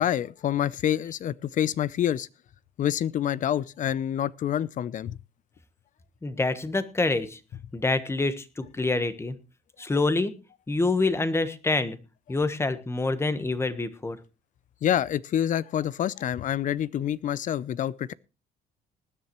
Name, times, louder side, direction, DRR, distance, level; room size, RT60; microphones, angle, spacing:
voice 1, 0.0-2.3 2.8-5.2 14.8-18.1, left 10 dB, 50° left, 0.6 m, -27 dB
voice 2, 6.2-7.4 7.7-9.4 9.8-10.4 10.7-12.0 12.3-14.2, left 3 dB, 15° left, 1.2 m, -26 dB
19.5 x 9.9 x 3.0 m
cardioid pair, 110°, 17 cm